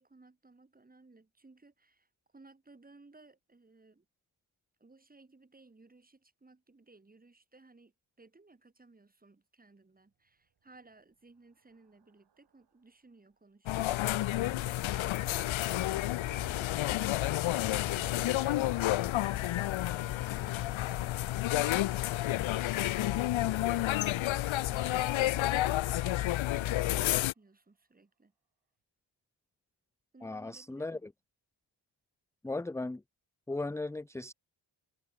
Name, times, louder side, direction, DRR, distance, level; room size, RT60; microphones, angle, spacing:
voice 1, 0.0-2.1 2.3-4.1 4.8-7.9 8.2-15.6 16.3-17.4 18.0-22.5 23.4-23.9 24.7-28.3 30.1-31.0, right 3 dB, 20° right, 2.2 m, -59 dB
sound 1, 10.4-12.9 14.6-26.8, right 8 dB, 55° right, 2.0 m, -61 dB
sound 2, 13.7-27.3, left 15 dB, 75° left, 0.6 m, -30 dB
voice 2, 30.2-31.1 32.4-33.0 33.5-34.3, left 2 dB, 5° left, 0.4 m, -37 dB
wide cardioid pair, 150°, 48 cm